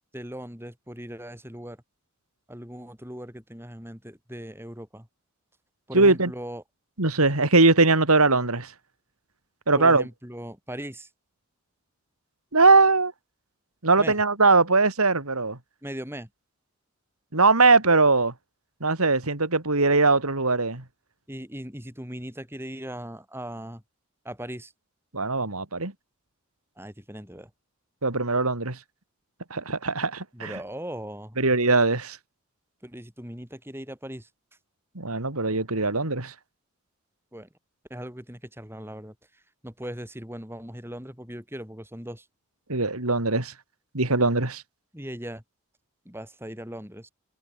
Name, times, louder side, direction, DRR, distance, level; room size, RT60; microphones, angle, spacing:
voice 1, 0.1-1.8 2.5-5.1 5.9-6.6 9.7-11.1 14.0-14.2 15.8-16.3 21.3-23.8 24.2-24.7 26.8-27.5 30.3-31.4 32.8-34.3 37.3-37.5 37.9-39.1 39.6-42.3 44.9-45.4 46.1-47.1, equal, 10° right, 7.6 m, -38 dB
voice 2, 5.9-6.3 7.0-8.7 9.7-10.0 12.5-13.1 13.8-15.6 17.3-18.3 18.8-20.8 25.1-25.9 28.0-28.8 29.5-30.6 31.4-32.2 34.9-36.3 42.7-43.5 43.9-44.6, right 3 dB, 90° right, 3.2 m, -21 dB
head